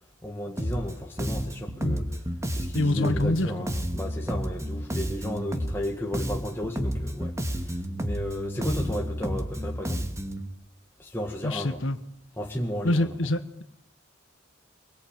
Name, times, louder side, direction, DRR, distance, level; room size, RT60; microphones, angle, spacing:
voice 1, 0.0-2.2 2.5-10.1 11.0-11.8 12.4-13.1, left 1 dB, 10° left, 1.9 m, -34 dB
Bass guitar, 0.6-0.9 1.2-5.9 6.1-10.5, equal, 15° right, 2.2 m, -31 dB
voice 2, 2.7-3.5 11.4-12.0 12.8-13.6, left 1 dB, 65° left, 1.4 m, -26 dB
23.5 x 22.5 x 9.0 m
head